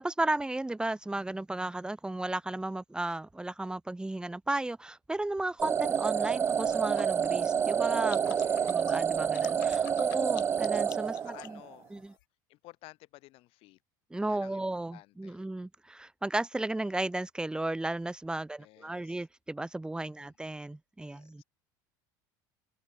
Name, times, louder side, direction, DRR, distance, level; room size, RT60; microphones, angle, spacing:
voice 1, 0.0-8.4 8.7-11.6 11.9-12.1 14.1-21.4, right 2 dB, 10° right, 2.7 m, -34 dB
sound 1, 5.6-11.7, right 7 dB, 25° right, 0.3 m, -28 dB
sound 2, 6.1-12.2, left 16 dB, 90° left, 7.9 m, -50 dB
voice 2, 8.3-9.1 11.1-11.9 12.5-13.8 14.3-15.4 18.6-19.3 20.1-20.3 21.0-21.4, left 20 dB, 60° left, 7.2 m, -54 dB
supercardioid pair, 105°, 11 cm